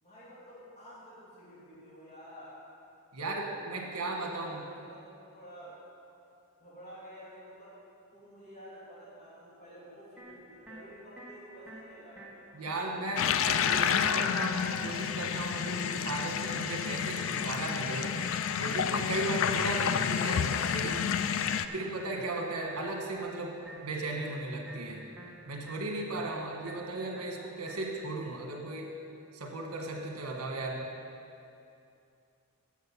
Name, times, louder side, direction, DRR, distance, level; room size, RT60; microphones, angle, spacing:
voice 1, 0.0-2.5 3.2-5.0 5.3-5.7 6.6-7.8 8.1-12.4 13.2-14.1, equal, 30° left, -10 dB, 2.9 m, -51 dB
voice 2, 3.1-4.6 12.5-21.1 21.7-25.0 25.5-29.0 29.3-30.9, right 2 dB, 75° right, 1 dB, 1.5 m, -36 dB
sound 1, 10.2-28.1, right 1 dB, 5° right, 1.4 m, -50 dB
sound 2, 13.2-21.7, left 8 dB, 60° left, 0.4 m, -30 dB
10.5 x 7.7 x 5.8 m, 2.6 s
head